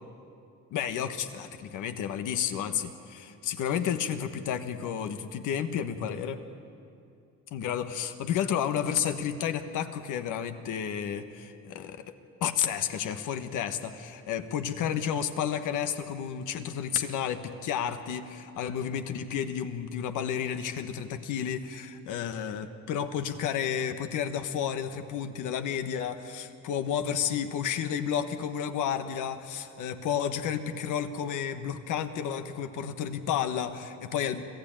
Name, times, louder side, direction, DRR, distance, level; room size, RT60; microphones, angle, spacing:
voice 1, 0.7-6.4 7.5-12.1 12.4-34.4, left 8 dB, 90° left, 8 dB, 1.4 m, -31 dB
26.5 x 16.0 x 8.9 m, 2.5 s
cardioid pair, 90°, 30 cm